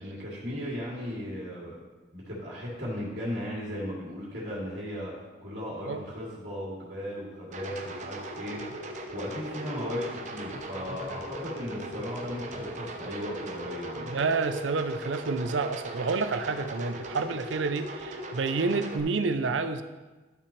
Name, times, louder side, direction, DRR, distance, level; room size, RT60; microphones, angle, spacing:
voice 1, 0.0-1.8 2.1-14.2, equal, 60° right, -7 dB, 2.6 m, -36 dB
sound 1, 7.5-19.0, right 1 dB, 40° right, 0.7 m, -39 dB
voice 2, 14.1-19.8, right 4 dB, 75° right, 10 dB, 0.5 m, -29 dB
12.0 x 5.9 x 3.3 m, 1.2 s
head